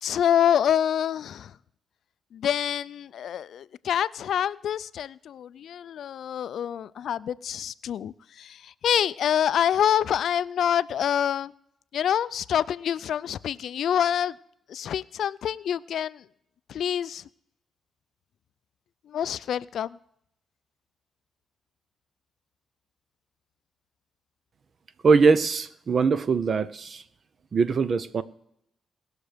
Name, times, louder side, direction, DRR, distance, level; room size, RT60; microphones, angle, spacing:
voice 1, 0.0-1.6 2.3-11.5 11.9-14.4 14.7-16.2 16.7-17.2 19.1-20.0, left 9 dB, 75° left, 0.3 m, -26 dB
voice 2, 25.0-27.0 27.5-28.2, right 5 dB, 50° right, 0.7 m, -22 dB
19.0 x 6.4 x 5.1 m
cardioid pair, 80°, 0 cm